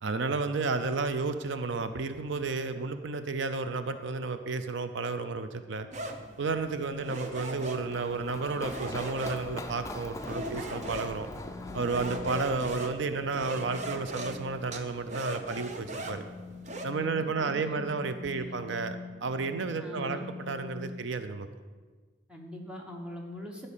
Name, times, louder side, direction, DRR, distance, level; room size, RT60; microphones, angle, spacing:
voice 1, 0.0-5.9 6.4-11.3 11.7-16.2 16.8-21.5, right 4 dB, 70° right, 10 dB, 0.5 m, -32 dB
sound 1, 5.9-16.9, right 1 dB, 35° right, 0.8 m, -40 dB
Run, 7.2-12.8, left 2 dB, 15° left, 0.4 m, -42 dB
sound 2, 11.3-20.9, left 4 dB, 30° left, 2.3 m, -46 dB
voice 2, 17.0-17.9 18.3-18.5 19.8-20.3 22.3-23.7, equal, 5° right, 0 dB, 1.2 m, -42 dB
12.0 x 5.4 x 7.3 m, 1.4 s
head